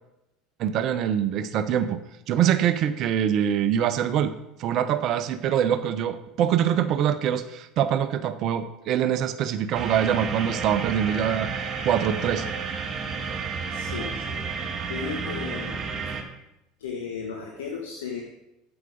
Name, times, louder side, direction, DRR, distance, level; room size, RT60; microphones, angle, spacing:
voice 1, 0.6-2.0 2.3-4.3 4.6-11.5 11.8-12.4, right 9 dB, 50° right, 11 dB, 0.7 m, -24 dB
sound 1, 9.7-16.2, right 5 dB, 35° right, 1.9 m, -31 dB
voice 2, 13.7-14.4 14.9-15.8 16.8-18.2, left 6 dB, 75° left, 1 dB, 1.3 m, -35 dB
9.5 x 8.0 x 5.0 m, 0.89 s
hypercardioid pair, 70°, 0 cm